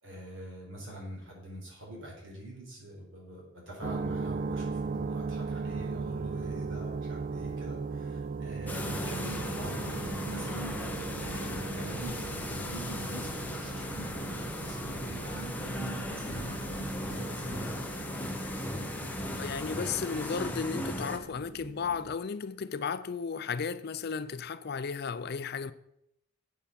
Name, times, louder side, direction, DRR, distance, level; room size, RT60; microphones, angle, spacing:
voice 1, 0.0-18.0, right 1 dB, 60° right, 4.3 m, -44 dB
sound 1, 3.8-22.2, right 4 dB, 40° right, 0.3 m, -38 dB
sound 2, 8.7-21.2, left 1 dB, 10° left, 1.0 m, -37 dB
voice 2, 19.4-25.7, left 5 dB, 50° left, 0.4 m, -34 dB
8.4 x 8.1 x 5.9 m
head